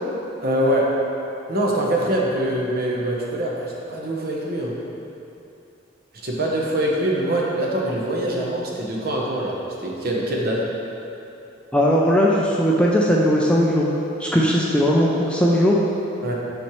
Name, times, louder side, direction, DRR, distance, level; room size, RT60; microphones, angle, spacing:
voice 1, 0.4-0.9 1.5-4.7 6.2-10.6 16.2-16.3, right 1 dB, 50° right, -2 dB, 0.9 m, -24 dB
voice 2, 11.7-13.9 14.2-15.7, equal, 5° left, -4 dB, 0.4 m, -18 dB
7.3 x 5.3 x 3.1 m, 2.9 s
head